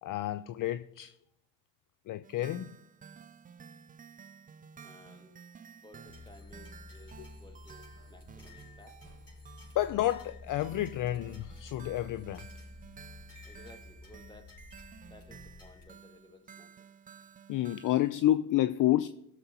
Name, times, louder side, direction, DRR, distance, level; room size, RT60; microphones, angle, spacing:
voice 1, 0.0-1.1 2.1-2.7 9.7-12.5 17.5-19.1, left 14 dB, 50° left, 0.5 m, -29 dB
sound 1, 2.2-18.1, right 7 dB, 20° right, 0.4 m, -53 dB
voice 2, 4.8-5.3 5.8-9.0 13.4-14.5 15.0-16.9, left 1 dB, 10° left, 1.6 m, -56 dB
sound 2, 6.1-15.9, left 2 dB, 30° left, 4.7 m, -51 dB
17.0 x 6.8 x 2.9 m
supercardioid pair, 70°, 43 cm